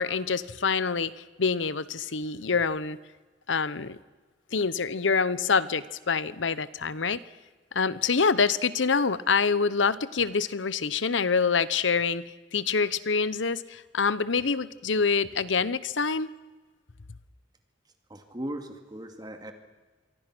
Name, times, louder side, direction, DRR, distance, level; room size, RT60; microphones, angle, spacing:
voice 1, 0.0-3.0 3.5-4.0 4.5-7.2 7.7-12.2 12.5-16.3, left 5 dB, 75° left, 17 dB, 0.9 m, -26 dB
voice 2, 18.1-19.5, right 1 dB, 20° right, 5 dB, 2.1 m, -38 dB
27.0 x 23.0 x 6.2 m, 1.3 s
head